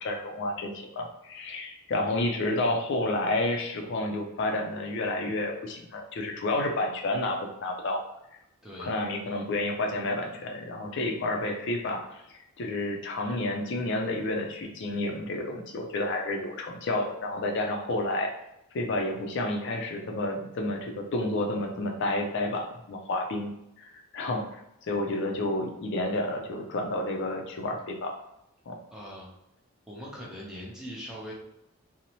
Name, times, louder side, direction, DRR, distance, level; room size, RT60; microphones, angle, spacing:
voice 1, 0.0-8.0 8.8-18.3 18.7-23.5 23.9-24.6 24.9-28.2 28.7-28.8, left 2 dB, 55° left, 2 dB, 0.4 m, -30 dB
voice 2, 28.9-29.3 29.9-31.3, equal, 5° right, -5 dB, 0.6 m, -41 dB
2.6 x 2.0 x 2.9 m, 0.83 s
head